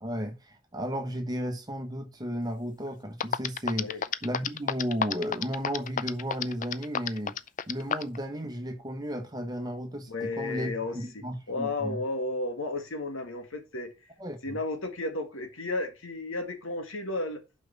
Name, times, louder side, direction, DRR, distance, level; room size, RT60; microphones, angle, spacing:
voice 1, 0.0-3.9 4.2-7.4 7.7-12.0 14.2-14.6, equal, 20° right, 1.4 m, -34 dB
sound 1, 2.9-3.0 3.2-8.2, left 7 dB, 35° left, 0.4 m, -29 dB
voice 2, 10.1-13.9 14.4-17.4, left 2 dB, 70° left, 2.0 m, -33 dB
5.9 x 5.5 x 6.7 m
head